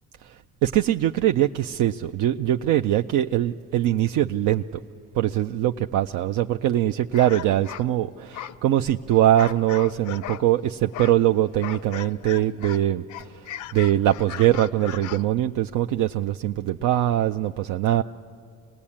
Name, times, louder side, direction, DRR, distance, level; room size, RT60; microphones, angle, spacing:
voice 1, 0.6-4.6 5.1-13.4 13.7-18.0, right 12 dB, 90° right, 0.5 m, -22 dB
sound 1, 7.1-10.5 10.9-12.8 13.1-15.3, left 11 dB, 75° left, 0.6 m, -38 dB
25.0 x 19.0 x 8.7 m
cardioid pair, 90°, 30 cm